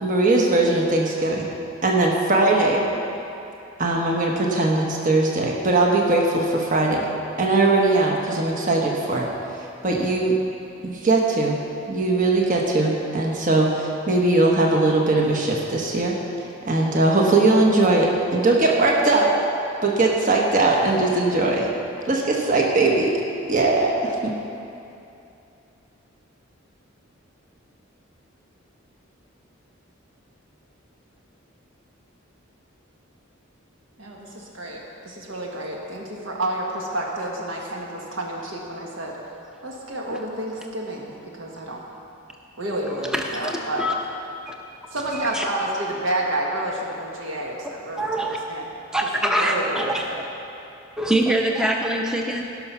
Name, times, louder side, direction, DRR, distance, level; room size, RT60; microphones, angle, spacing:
voice 1, 0.0-1.5 1.8-2.8 3.8-7.1 7.4-9.3 9.8-10.4 10.8-11.6 11.9-16.2 16.6-19.3 19.8-21.7 22.1-23.1 23.5-24.3, right 2 dB, 40° right, -1 dB, 1.2 m, -20 dB
voice 2, 34.0-39.2 39.6-41.8 42.6-43.9 44.9-48.7 49.2-50.2, right 1 dB, 70° right, -2 dB, 1.5 m, -30 dB
voice 3, 43.0-43.9 44.5-44.6 45.3-45.4 48.0-48.4 48.9-50.3 51.0-52.4, right 1 dB, 5° right, 0 dB, 0.7 m, -24 dB
17.5 x 6.0 x 5.6 m, 2.7 s
head